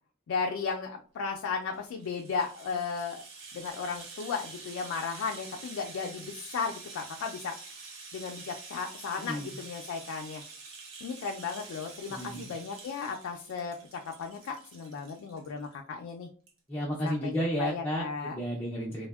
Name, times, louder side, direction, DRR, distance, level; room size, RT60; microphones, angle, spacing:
voice 1, 0.3-3.2 3.5-7.6 8.1-10.4 11.0-16.3 17.0-17.3 17.6-18.4, left 5 dB, 90° left, 3 dB, 0.3 m, -35 dB
Rattle (instrument), 1.6-15.7 16.1-16.2 16.5-16.6, right 4 dB, 70° right, 0.8 m, -47 dB
voice 2, 9.2-9.6 12.1-12.5 16.7-19.1, equal, 10° left, -4 dB, 0.4 m, -32 dB
3.4 x 2.0 x 2.2 m, 0.42 s
head